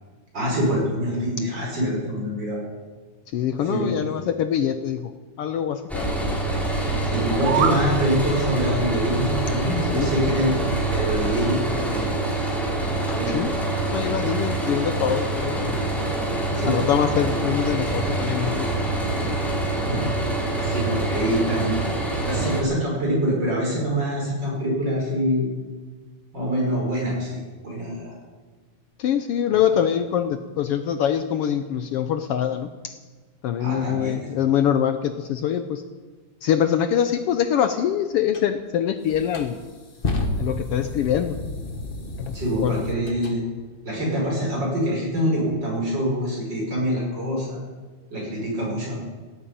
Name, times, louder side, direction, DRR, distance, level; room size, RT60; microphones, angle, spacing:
voice 1, 0.3-2.6 3.7-4.2 7.0-12.0 13.1-13.5 16.5-16.9 19.6-20.1 20.6-25.5 26.3-28.1 29.5-29.6 33.6-34.3 42.3-43.4 43.8-47.6 48.1-49.0, equal, 35° right, -3 dB, 5.9 m, -25 dB
voice 2, 3.3-5.1 5.4-6.1 9.9-10.3 12.9-13.5 13.9-15.8 16.6-18.7 29.0-32.9 33.4-35.8 36.4-39.6 40.4-41.4 42.2-42.8, left 9 dB, 75° left, 9 dB, 1.3 m, -24 dB
sound 1, 5.9-22.6, right 2 dB, ahead, 2.7 m, -25 dB
sound 2, 7.1-7.9, right 7 dB, 80° right, 2.7 m, -24 dB
sound 3, 38.3-38.5 39.1-43.4, left 2 dB, 35° left, 0.8 m, -31 dB
16.5 x 9.0 x 8.8 m, 1.4 s
omnidirectional pair, 3.3 m